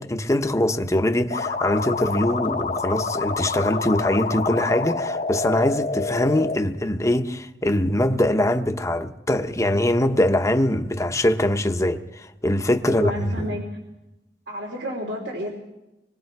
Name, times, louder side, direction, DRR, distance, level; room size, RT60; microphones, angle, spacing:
voice 1, 0.0-13.5, left 1 dB, 20° left, 1.0 m, -22 dB
sound 1, 1.3-6.6, left 3 dB, 45° left, 1.0 m, -27 dB
voice 2, 12.8-13.6 14.5-15.5, equal, 75° right, 3.2 m, -30 dB
25.5 x 21.5 x 4.7 m
head